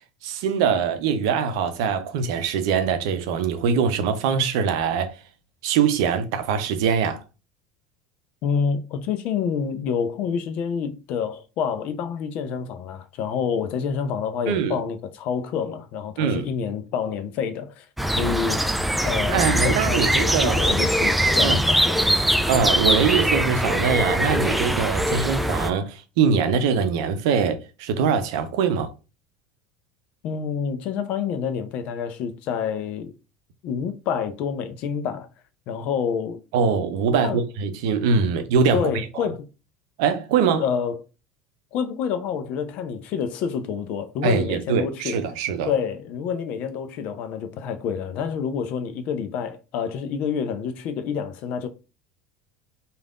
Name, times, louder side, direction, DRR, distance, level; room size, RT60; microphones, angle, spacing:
voice 1, 0.2-5.2 5.6-7.2 14.5-14.8 16.2-16.5 19.3-20.6 21.4-21.6 22.5-28.9 36.5-38.8 39.2-39.3 40.0-40.6 44.2-45.7, right 6 dB, 65° right, 0.5 m, -23 dB
voice 2, 8.4-17.9 18.2-18.6 19.0-22.0 30.2-33.2 33.6-35.3 35.7-36.4 37.1-37.4 38.7-39.5 40.5-41.0 41.7-45.2 45.6-51.7, left 7 dB, 55° left, 0.5 m, -28 dB
sound 1, 18.0-25.7, equal, 5° right, 0.4 m, -22 dB
3.3 x 2.4 x 2.4 m
hypercardioid pair, 75°, 3 cm